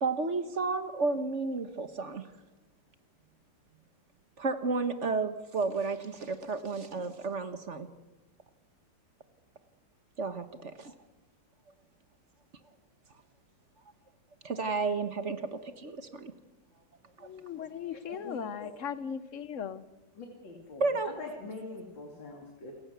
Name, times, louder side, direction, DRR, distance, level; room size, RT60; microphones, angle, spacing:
voice 1, 0.0-2.3 4.4-7.9 10.2-10.9 14.4-16.3 17.2-17.3 20.8-21.1, right 3 dB, 45° right, 10 dB, 1.5 m, -32 dB
voice 2, 17.2-19.9, left 7 dB, 50° left, 14 dB, 1.2 m, -38 dB
voice 3, 18.2-18.7 20.2-22.7, left 3 dB, 90° left, 2 dB, 3.5 m, -43 dB
28.5 x 15.5 x 8.2 m, 1.1 s
omnidirectional pair, 2.0 m